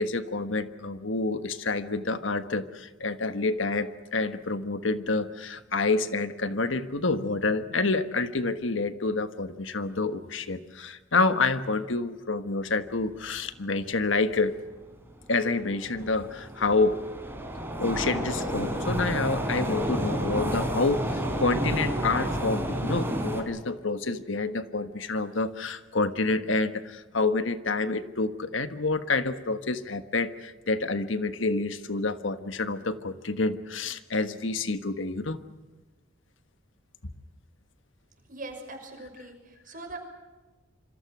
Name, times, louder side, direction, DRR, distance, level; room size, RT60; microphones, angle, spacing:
voice 1, 0.0-14.6 15.3-17.0 17.8-35.4, left 3 dB, 75° left, 11 dB, 1.4 m, -28 dB
sound 1, 14.7-14.8 15.4-23.4, right 1 dB, 10° right, 4.0 m, -30 dB
voice 2, 38.3-40.0, right 2 dB, 45° right, 4 dB, 5.8 m, -41 dB
27.0 x 26.0 x 6.2 m, 1.2 s
head